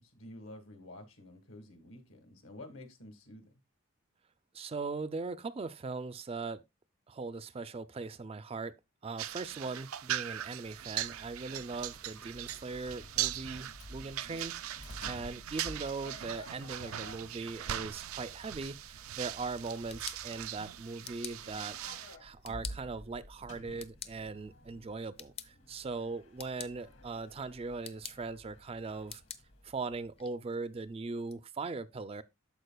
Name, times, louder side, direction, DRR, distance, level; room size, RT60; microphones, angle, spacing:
voice 1, 0.0-3.5, left 1 dB, 80° left, 1.6 m, -50 dB
voice 2, 4.5-6.6 7.1-8.8 9.0-21.8 22.2-29.2 29.6-32.2, right 4 dB, 30° right, 0.3 m, -40 dB
sound 1, 9.2-22.2, right 12 dB, 90° right, 0.4 m, -40 dB
Sliding door, 10.6-30.2, left 1 dB, 60° left, 1.4 m, -52 dB
sound 2, 19.6-31.4, left 7 dB, 30° left, 0.5 m, -51 dB
13.0 x 4.8 x 2.3 m
head